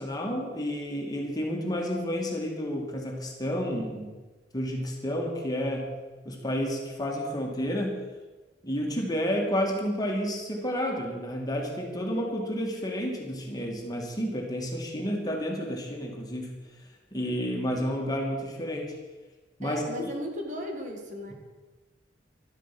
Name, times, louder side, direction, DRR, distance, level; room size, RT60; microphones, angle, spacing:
voice 1, 0.0-4.1 4.5-5.9 6.2-8.0 8.6-16.6 17.1-18.9 19.6-20.1, equal, 20° left, 0 dB, 2.6 m, -30 dB
voice 2, 19.6-21.3, equal, 45° right, 2 dB, 2.0 m, -36 dB
12.5 x 12.0 x 6.2 m, 1.3 s
head